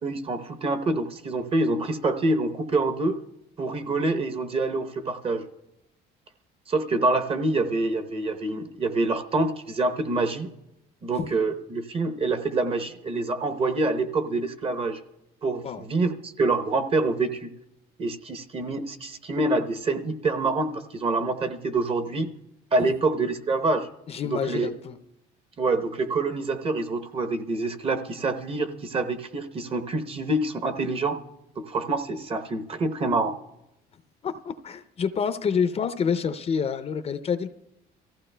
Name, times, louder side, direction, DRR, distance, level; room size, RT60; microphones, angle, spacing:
voice 1, 0.0-3.2 3.6-5.5 6.7-10.5 11.0-15.0 15.4-17.5 18.0-22.3 22.7-23.9 24.3-24.7 25.6-31.2 31.6-33.4, right 2 dB, 35° right, 7 dB, 0.8 m, -26 dB
voice 2, 24.1-25.0 34.2-37.5, left 6 dB, 35° left, 11 dB, 0.5 m, -27 dB
23.5 x 14.5 x 2.2 m, 0.86 s
cardioid pair, 110°, 17 cm